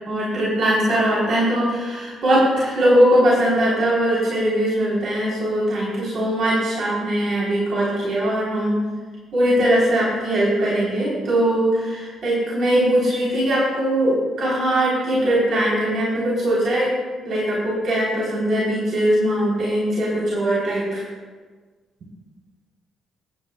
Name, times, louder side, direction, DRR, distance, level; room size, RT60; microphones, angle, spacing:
voice 1, 0.1-8.8 9.3-16.9 17.2-21.0, right 1 dB, 60° right, -6 dB, 3.6 m, -20 dB
22.5 x 10.5 x 2.3 m, 1.4 s
cardioid pair, 90°, 0 cm